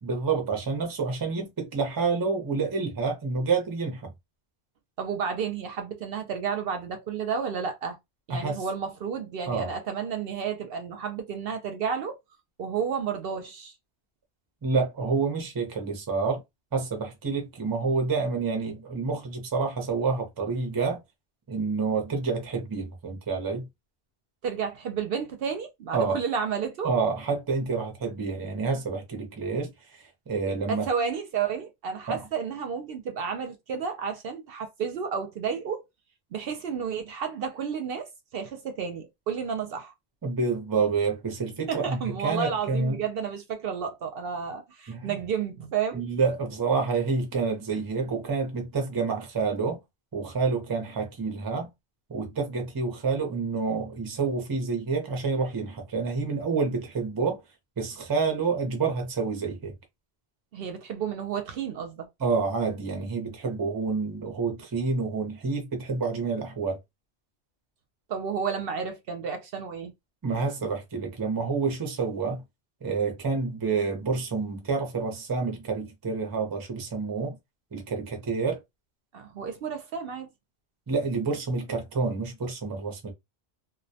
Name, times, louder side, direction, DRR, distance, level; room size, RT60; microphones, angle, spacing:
voice 1, 0.0-4.1 8.3-8.6 9.5-9.7 14.6-16.4 16.7-21.0 21.5-23.7 25.9-26.2 26.8-30.9 32.1-32.2 40.2-43.0 44.9-45.2 45.9-49.8 50.1-51.7 52.1-57.4 57.8-59.7 62.2-66.8 70.2-72.4 72.8-77.4 77.7-78.6 80.9-83.1, right 4 dB, 25° right, 0.5 m, -28 dB
voice 2, 5.0-8.0 8.3-12.2 12.6-13.7 24.4-26.9 30.4-35.8 36.3-39.9 41.7-46.0 60.5-62.1 68.1-69.9 79.1-80.3, right 6 dB, 65° right, 0.7 m, -31 dB
2.2 x 2.1 x 2.7 m
omnidirectional pair, 1.1 m